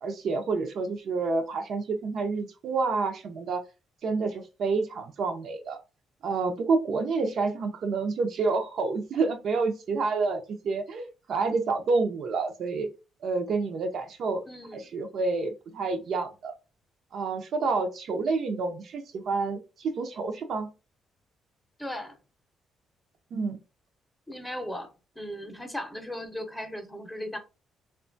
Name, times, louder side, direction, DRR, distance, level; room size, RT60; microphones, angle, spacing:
voice 1, 0.0-3.6 4.0-5.8 6.2-12.9 13.2-14.4 14.7-16.5 17.1-20.7 23.3-23.6, right 4 dB, 65° right, 0.5 m, -28 dB
voice 2, 14.5-14.9 21.8-22.2 24.3-24.9 25.2-27.4, left 1 dB, 5° left, 0.7 m, -37 dB
2.8 x 2.2 x 2.5 m
cardioid pair, 90°, 0 cm